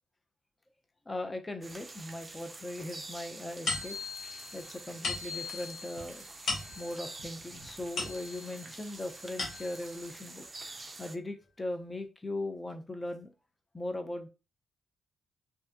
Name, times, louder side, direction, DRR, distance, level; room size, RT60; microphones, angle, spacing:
voice 1, 1.1-4.0 4.5-6.3 6.8-10.5 11.0-13.3 13.7-14.3, left 1 dB, 25° left, 6 dB, 0.6 m, -39 dB
sound 1, 1.6-11.2, right 3 dB, 35° right, 0.4 m, -47 dB
sound 2, 3.7-8.6 9.1-10.0, left 3 dB, 65° left, 0.9 m, -38 dB
2.6 x 2.3 x 2.2 m, 0.31 s
hypercardioid pair, 40°, 0 cm